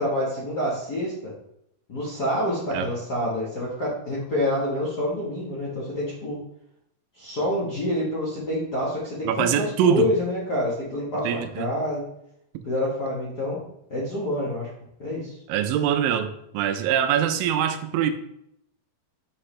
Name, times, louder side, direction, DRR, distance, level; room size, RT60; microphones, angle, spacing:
voice 1, 0.0-1.3 1.9-6.4 7.1-12.0 12.7-13.6 13.9-14.7 15.0-15.4, left 1 dB, 70° left, -7 dB, 0.9 m, -27 dB
voice 2, 9.2-10.1 11.2-11.7 15.5-18.1, right 9 dB, 80° right, 8 dB, 2.2 m, -23 dB
6.1 x 5.9 x 3.3 m, 0.76 s
omnidirectional pair, 4.2 m